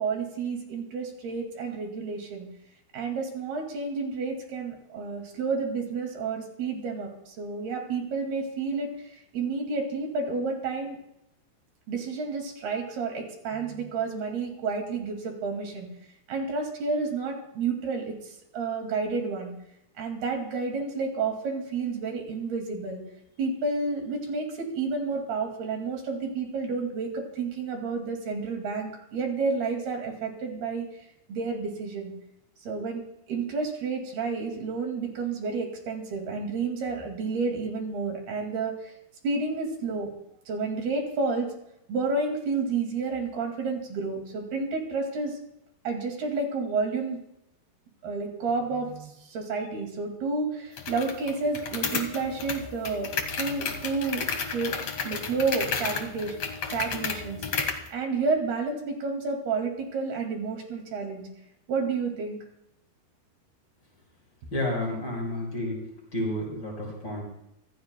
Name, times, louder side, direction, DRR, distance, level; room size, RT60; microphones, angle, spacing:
voice 1, 0.0-2.5 2.9-8.9 9.3-11.0 11.9-15.9 16.3-18.2 18.5-19.5 20.0-23.0 23.4-30.9 31.3-32.1 32.7-33.0 33.3-38.9 39.2-40.1 40.5-41.5 41.9-45.4 45.8-47.2 48.0-53.1 53.4-56.4 56.7-57.4 57.9-61.2 61.7-62.4, right 4 dB, 70° right, 2 dB, 4.2 m, -30 dB
sound 1, 50.8-57.9, left 5 dB, 50° left, 2.1 m, -32 dB
voice 2, 64.5-65.8 66.1-67.2, left 1 dB, 25° left, -3 dB, 6.8 m, -30 dB
26.0 x 17.5 x 2.3 m, 0.81 s
omnidirectional pair, 4.8 m